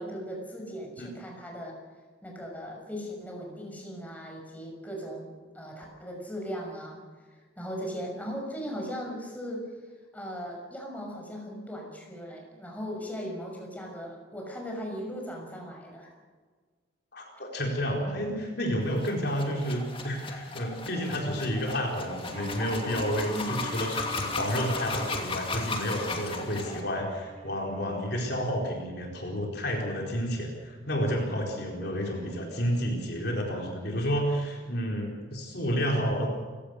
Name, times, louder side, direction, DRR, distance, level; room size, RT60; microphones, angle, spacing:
voice 1, 0.0-1.8 2.2-7.0 7.6-9.7 10.1-16.1 23.3-23.8, equal, 10° left, 0 dB, 6.0 m, -38 dB
voice 2, 17.1-36.3, equal, 55° left, 0 dB, 4.4 m, -30 dB
sound 1, 18.9-26.8, left 3 dB, 25° left, 2.6 m, -36 dB
Bowed string instrument, 22.3-28.3, right 1 dB, 35° right, 2.8 m, -45 dB
29.0 x 17.5 x 6.6 m, 1.5 s
head